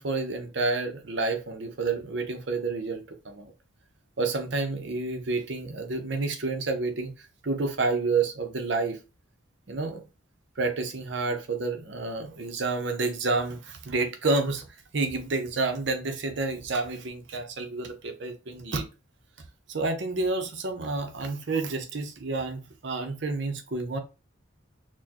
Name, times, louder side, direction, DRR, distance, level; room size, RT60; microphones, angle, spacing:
voice 1, 0.0-3.5 4.2-9.0 9.7-10.0 10.6-14.7 14.9-18.8 19.7-24.0, right 3 dB, 60° right, 0.7 m, -29 dB
4.3 x 2.2 x 2.8 m
head